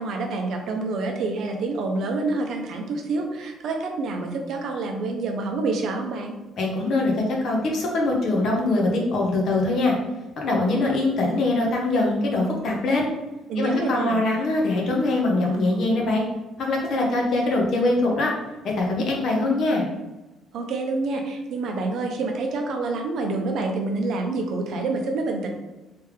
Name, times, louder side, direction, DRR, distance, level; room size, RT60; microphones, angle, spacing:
voice 1, 0.0-6.3 13.5-14.2 20.5-25.5, right 3 dB, 50° right, 3 dB, 0.6 m, -27 dB
voice 2, 6.6-9.9 10.4-13.1 13.6-16.2 16.6-18.3 18.6-19.9, left 2 dB, 45° left, -1 dB, 0.9 m, -23 dB
3.4 x 3.3 x 3.3 m, 1.1 s
cardioid pair, 180°, 0 cm